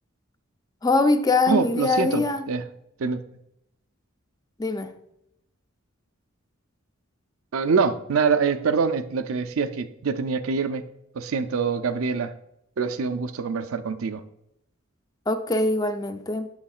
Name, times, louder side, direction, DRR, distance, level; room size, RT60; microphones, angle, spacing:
voice 1, 0.8-2.4 4.6-4.9 15.3-16.5, left 3 dB, 20° left, 9 dB, 0.4 m, -22 dB
voice 2, 1.5-2.6 3.0-3.2 7.5-10.8 11.1-12.3 12.8-14.2, right 5 dB, 90° right, 10 dB, 0.5 m, -25 dB
7.7 x 7.2 x 2.4 m, 0.80 s
head